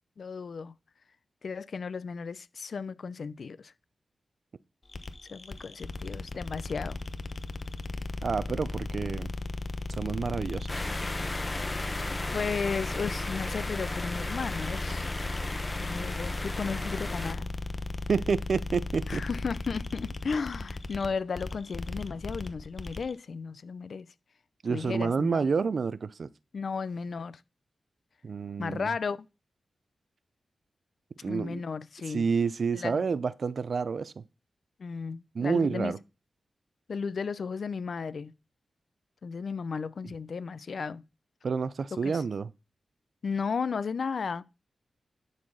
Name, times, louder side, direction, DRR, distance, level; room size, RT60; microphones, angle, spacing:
voice 1, 0.2-0.7 1.4-3.7 5.3-7.0 12.3-15.1 15.8-17.5 19.1-24.1 24.7-25.5 26.5-27.4 28.6-29.3 31.3-32.3 32.7-33.0 34.8-35.9 36.9-38.3 39.2-41.0 41.9-42.2 43.2-44.4, left 5 dB, 70° left, 0.6 m, -34 dB
sound 1, 4.9-23.1, left 2 dB, 40° left, 1.0 m, -36 dB
voice 2, 8.2-9.3 9.9-10.8 18.1-19.2 24.6-26.3 28.2-28.9 31.2-31.6 32.1-34.2 35.3-36.0 41.4-42.5, right 5 dB, 65° right, 0.6 m, -29 dB
sound 2, 10.7-17.3, left 2 dB, 25° left, 1.3 m, -36 dB
10.5 x 4.2 x 6.3 m
wide cardioid pair, 75°, 0 cm